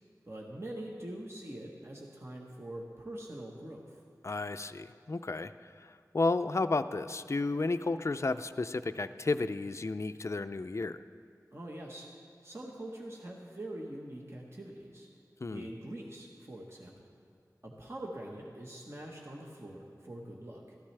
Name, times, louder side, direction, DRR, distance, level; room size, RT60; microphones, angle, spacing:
voice 1, 0.3-4.0 11.5-12.0 12.4-15.1 15.5-17.1 17.6-20.6, right 1 dB, 40° right, -2 dB, 1.3 m, -44 dB
voice 2, 4.2-11.0 15.4-15.7, left 3 dB, 45° left, 10 dB, 0.4 m, -32 dB
14.0 x 13.0 x 3.3 m, 2.3 s
wide cardioid pair, 40°, 7 cm